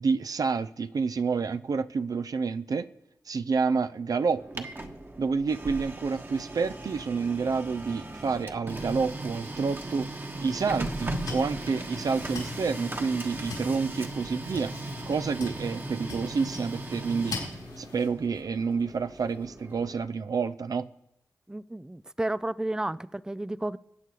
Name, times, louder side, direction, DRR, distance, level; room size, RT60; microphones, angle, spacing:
voice 1, 0.0-2.9 3.3-4.7 5.2-10.1 10.4-14.7 15.1-17.4 17.8-20.9, right 5 dB, 65° right, 0.5 m, -29 dB
Printer, 4.3-20.1, right 2 dB, 30° right, 1.3 m, -38 dB
sound 1, 10.7-18.1, left 4 dB, 80° left, 4.0 m, -42 dB
voice 2, 21.5-23.8, right 1 dB, 10° right, 0.4 m, -32 dB
22.0 x 8.2 x 4.7 m
cardioid pair, 55°, 7 cm